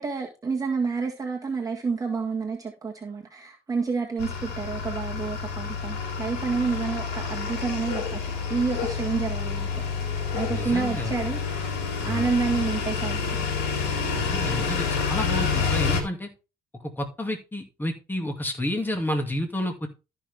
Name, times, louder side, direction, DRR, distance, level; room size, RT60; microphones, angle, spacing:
voice 1, 0.0-8.2 8.5-9.8 10.3-11.7 12.0-13.4, right 5 dB, 20° right, 1.7 m, -29 dB
sound 1, 4.2-16.0, left 5 dB, 85° left, 3.7 m, -28 dB
voice 2, 10.5-11.2 12.0-12.2 14.2-16.3 17.0-19.9, left 1 dB, 10° left, 2.3 m, -30 dB
13.5 x 5.9 x 3.5 m
cardioid pair, 110°, 17 cm